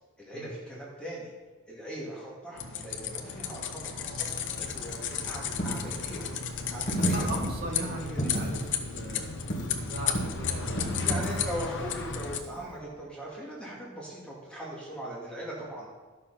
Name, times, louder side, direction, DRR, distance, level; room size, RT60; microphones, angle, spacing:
voice 1, 0.2-1.3 1.7-4.3 4.6-6.3 6.7-7.5 8.0-8.3 11.0-15.9, right 1 dB, 5° left, -5 dB, 2.4 m, -40 dB
sound 1, 2.6-12.4, left 6 dB, 55° left, 0.9 m, -34 dB
Coin (dropping), 4.2-12.8, right 1 dB, 35° left, 1.7 m, -35 dB
voice 2, 6.9-9.3 9.8-11.2, right 1 dB, 45° right, -1 dB, 2.2 m, -38 dB
12.0 x 6.9 x 5.7 m, 1.3 s
head